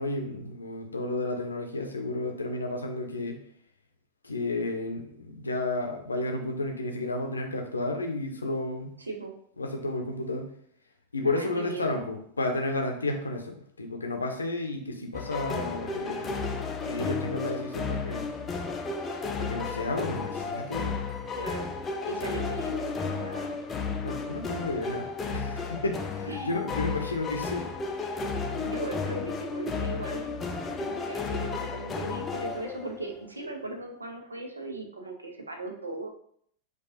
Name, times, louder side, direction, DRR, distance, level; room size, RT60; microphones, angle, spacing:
voice 1, 0.0-3.4 4.2-9.0 9.6-10.5 11.1-16.5 16.8-18.3 19.4-21.0 24.0-25.0 25.3-27.7, left 2 dB, 75° left, 3 dB, 0.6 m, -32 dB
voice 2, 9.0-9.3 11.2-12.0 21.3-21.7 22.1-23.6 26.3-26.7 28.5-36.1, right 2 dB, 80° right, 3 dB, 0.7 m, -38 dB
sound 1, 15.1-33.3, left 4 dB, 20° left, 0.4 m, -33 dB
4.5 x 2.4 x 2.8 m, 0.66 s
figure-of-eight pair, 90°, 0 cm